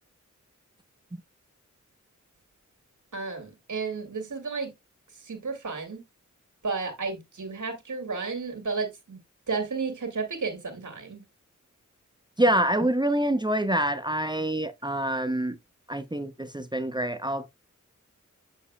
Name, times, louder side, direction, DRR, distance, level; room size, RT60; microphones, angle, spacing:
voice 1, 3.1-4.7 5.2-6.0 6.6-9.2 9.5-11.2, right 4 dB, 70° right, 2.3 m, -32 dB
voice 2, 12.4-15.6 15.9-17.5, right 1 dB, 15° right, 0.7 m, -26 dB
7.3 x 6.5 x 2.2 m
cardioid pair, 50°, 31 cm